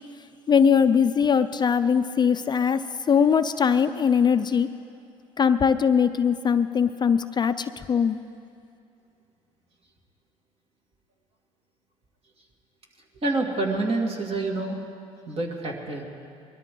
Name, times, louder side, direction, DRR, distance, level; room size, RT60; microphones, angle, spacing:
voice 1, 0.5-4.7 5.4-8.2, left 7 dB, 35° left, 11 dB, 0.5 m, -21 dB
voice 2, 13.2-14.8 15.3-16.0, right 2 dB, 45° right, 0 dB, 2.5 m, -27 dB
21.5 x 13.0 x 3.9 m, 2.5 s
supercardioid pair, 75°, 14 cm